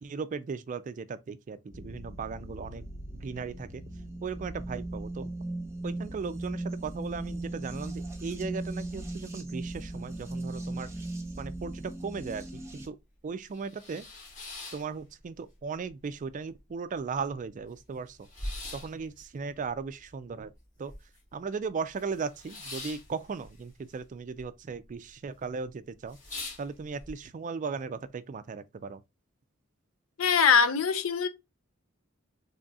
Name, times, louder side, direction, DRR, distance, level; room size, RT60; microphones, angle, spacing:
voice 1, 0.0-2.8 3.2-3.8 4.2-5.3 5.8-10.9 11.4-11.7 12.0-13.0 13.2-14.0 14.7-18.2 18.7-20.5 20.8-20.9 21.3-26.2 26.6-29.0, right 5 dB, 40° right, 0.3 m, -37 dB
sound 1, 1.7-12.9, right 2 dB, 15° right, 0.9 m, -38 dB
sound 2, 13.3-15.6 15.9-16.6 17.0-17.1 17.2-21.4 21.7-24.5 24.7-25.3 25.6-25.7 26.0-27.1, left 2 dB, 40° left, 1.6 m, -43 dB
voice 2, 30.2-31.3, left 6 dB, 80° left, 0.6 m, -22 dB
4.0 x 3.4 x 2.3 m
head